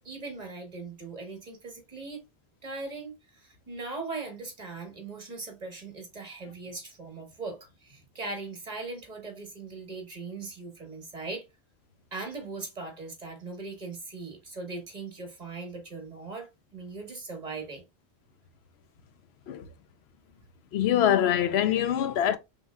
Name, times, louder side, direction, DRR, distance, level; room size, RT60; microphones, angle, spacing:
voice 1, 0.0-2.2 2.6-11.4 12.1-17.8 20.2-20.3, right 3 dB, 40° right, 1.3 m, -39 dB
voice 2, 20.7-22.4, left 10 dB, 80° left, 0.8 m, -24 dB
5.4 x 3.1 x 2.2 m
omnidirectional pair, 1.1 m